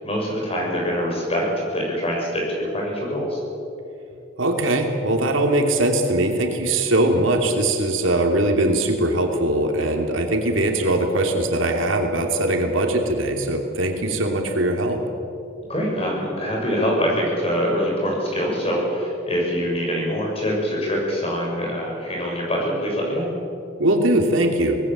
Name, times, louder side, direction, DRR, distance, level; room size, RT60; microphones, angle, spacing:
voice 1, 0.0-3.4 15.7-23.3, equal, 30° left, -2 dB, 7.1 m, -24 dB
voice 2, 4.4-15.0 23.8-24.8, right 1 dB, 85° right, 3 dB, 3.0 m, -21 dB
25.0 x 19.0 x 7.6 m, 2.7 s
head